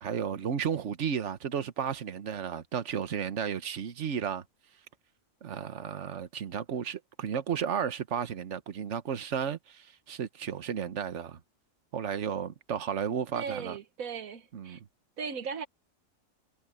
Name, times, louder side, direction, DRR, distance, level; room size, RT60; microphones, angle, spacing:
voice 1, 0.0-4.4 5.4-11.4 11.9-13.8 14.5-14.8, right 8 dB, 60° right, 1.4 m, -33 dB
voice 2, 13.3-14.8 15.2-15.7, right 6 dB, 90° right, 1.6 m, -37 dB
omnidirectional pair, 1.4 m